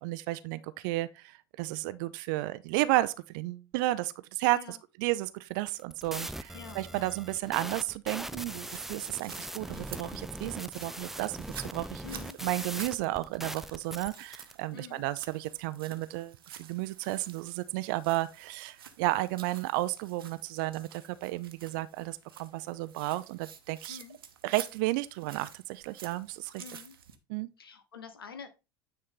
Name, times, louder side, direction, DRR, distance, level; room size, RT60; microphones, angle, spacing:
voice 1, 0.0-12.0 12.4-24.0 24.4-26.6 27.3-27.5, right 18 dB, 60° right, 0.5 m, -33 dB
sound 1, 5.6-14.5, right 1 dB, 5° right, 0.4 m, -41 dB
voice 2, 6.5-7.1 12.0-12.4 14.7-15.0 23.9-24.2 26.6-27.0 27.6-28.5, left 7 dB, 85° left, 1.1 m, -47 dB
sound 2, 8.6-27.2, right 8 dB, 80° right, 1.0 m, -50 dB
9.5 x 4.3 x 3.8 m
figure-of-eight pair, 70°, 12 cm